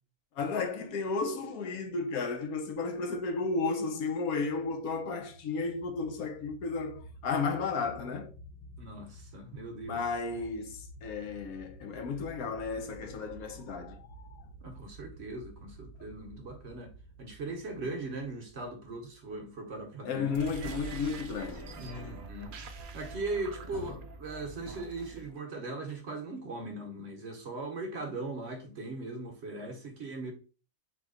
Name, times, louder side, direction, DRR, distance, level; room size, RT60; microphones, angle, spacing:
voice 1, 0.4-8.3 9.7-14.4 20.0-22.2, left 4 dB, 75° left, 1.2 m, -33 dB
sound 1, 4.3-21.3, right 1 dB, 45° left, 0.6 m, -52 dB
voice 2, 8.8-10.0 14.6-16.9 17.2-20.4 21.8-22.5 22.9-30.3, right 2 dB, 55° right, 0.9 m, -39 dB
sound 2, 20.3-25.3, right 4 dB, 85° right, 0.4 m, -44 dB
4.1 x 3.0 x 3.8 m
omnidirectional pair, 1.6 m